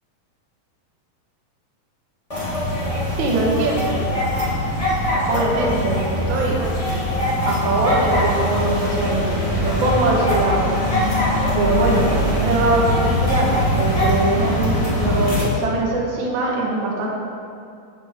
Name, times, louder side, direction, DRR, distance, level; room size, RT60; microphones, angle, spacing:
sound 1, 2.3-15.4, left 1 dB, 50° left, 0.4 m, -21 dB
voice 1, 3.2-4.0 5.3-6.6 7.5-10.8 11.5-17.1, right 2 dB, 70° right, -3 dB, 1.2 m, -22 dB
7.5 x 7.0 x 4.3 m, 2.4 s
omnidirectional pair, 3.9 m